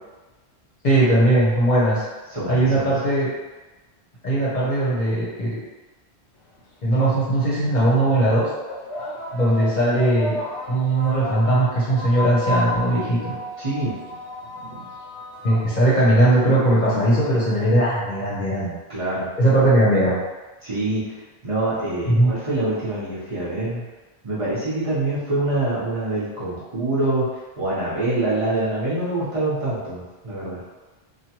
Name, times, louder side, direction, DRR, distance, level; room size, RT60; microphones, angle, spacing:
voice 1, 0.8-2.0 2.5-3.3 4.2-5.6 6.8-8.4 9.3-10.4 10.7-13.3 15.4-18.8 19.4-20.2 22.1-22.3, right 1 dB, 45° left, -8 dB, 0.8 m, -19 dB
voice 2, 2.3-2.9 13.6-13.9 18.9-19.3 20.6-21.0 21.4-23.8 24.2-27.2 27.6-30.6, right 2 dB, 35° right, -11 dB, 0.9 m, -25 dB
sound 1, 6.6-6.7 7.6-7.8 8.6-17.5, left 1 dB, 85° left, 0.9 m, -33 dB
2.9 x 2.2 x 2.8 m, 1.2 s
omnidirectional pair, 1.1 m